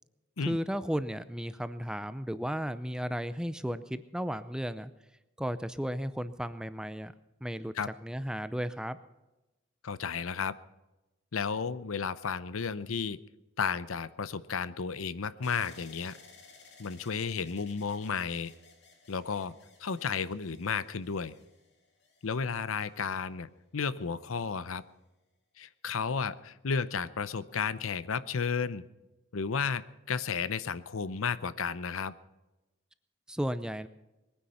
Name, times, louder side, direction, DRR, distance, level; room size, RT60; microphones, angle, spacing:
voice 1, 0.4-4.9 5.4-7.1 7.4-7.7 8.0-9.0 33.3-33.9, equal, 5° right, 13 dB, 0.5 m, -34 dB
voice 2, 9.8-10.5 11.3-13.2 13.6-16.2 16.8-18.5 19.1-19.5 19.8-21.3 22.2-24.8 25.6-28.8 29.3-32.1, left 5 dB, 85° left, 16 dB, 0.7 m, -33 dB
sound 1, 15.4-23.4 24.1-24.8, left 4 dB, 55° left, 2.7 m, -58 dB
21.5 x 10.0 x 5.6 m, 1.0 s
head